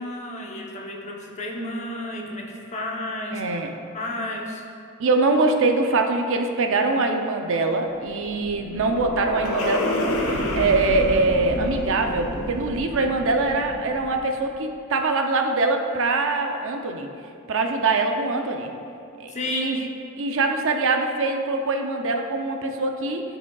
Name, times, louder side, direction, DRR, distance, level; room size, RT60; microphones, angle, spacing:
voice 1, 0.0-3.6 3.9-4.6 19.3-19.8, left 1 dB, 35° left, -1 dB, 0.8 m, -32 dB
voice 2, 3.3-3.7 5.0-17.1 17.5-18.7 19.2-19.9 20.2-23.2, right 3 dB, 65° right, 4 dB, 0.6 m, -23 dB
sound 1, 7.9-14.4, left 1 dB, 85° left, 1.0 m, -29 dB
13.0 x 5.0 x 2.3 m, 2.5 s
head